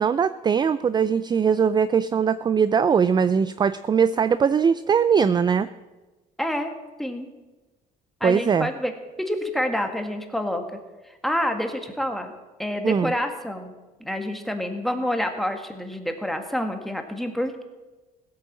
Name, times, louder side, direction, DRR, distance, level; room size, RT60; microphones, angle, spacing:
voice 1, 0.0-5.7 8.2-8.7 12.8-13.1, right 6 dB, 25° right, 15 dB, 0.4 m, -21 dB
voice 2, 6.4-6.7 7.0-7.3 8.2-8.9 9.2-10.6 11.1-12.3 12.6-13.7 14.0-17.6, left 1 dB, ahead, 5 dB, 1.8 m, -28 dB
16.5 x 8.7 x 7.4 m, 1.2 s
cardioid pair, 110°, 17 cm